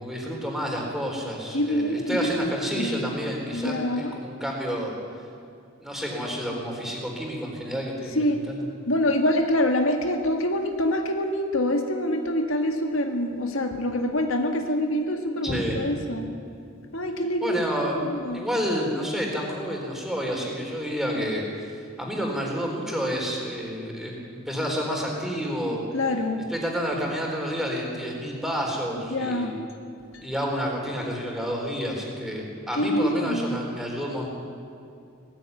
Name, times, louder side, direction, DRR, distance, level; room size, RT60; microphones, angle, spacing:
voice 1, 0.0-5.0 5.8-8.6 15.4-15.8 17.4-18.0 18.3-25.8 26.5-29.5 30.2-34.3, equal, ahead, -1 dB, 4.0 m, -29 dB
voice 2, 1.5-3.1 3.5-4.1 8.2-8.4 8.9-16.3 16.9-17.7 18.0-18.4 25.9-26.4 29.1-29.5 32.8-33.6, left 1 dB, 75° left, 4 dB, 1.9 m, -25 dB
18.5 x 15.0 x 9.6 m, 2.4 s
head